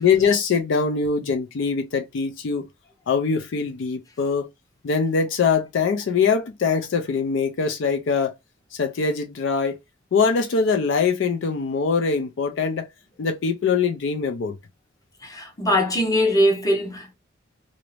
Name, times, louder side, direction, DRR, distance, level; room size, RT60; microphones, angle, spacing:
voice 1, 0.0-2.6 3.1-4.5 4.8-8.3 8.7-9.8 10.1-12.9 13.2-14.5, left 5 dB, 65° left, 0.4 m, -22 dB
voice 2, 15.2-17.1, equal, 20° left, 0.7 m, -21 dB
2.6 x 2.0 x 3.1 m
head